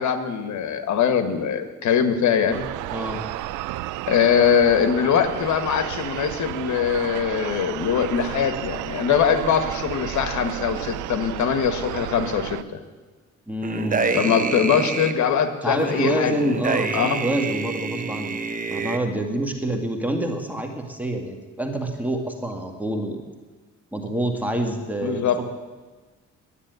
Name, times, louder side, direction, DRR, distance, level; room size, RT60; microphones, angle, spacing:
voice 1, 0.0-2.7 4.1-12.8 14.1-16.3 16.9-17.2 25.0-25.4, left 7 dB, 70° left, 9 dB, 1.5 m, -22 dB
sound 1, 2.5-12.6, right 15 dB, 85° right, 0.5 m, -32 dB
voice 2, 13.5-14.2 15.6-18.4 18.7-23.2 23.9-25.4, right 1 dB, 5° right, 2 dB, 2.0 m, -27 dB
sound 2, 13.6-15.1 15.8-19.0, right 4 dB, 30° right, 1.0 m, -27 dB
11.0 x 9.7 x 9.4 m, 1.3 s
cardioid pair, 90°, 30 cm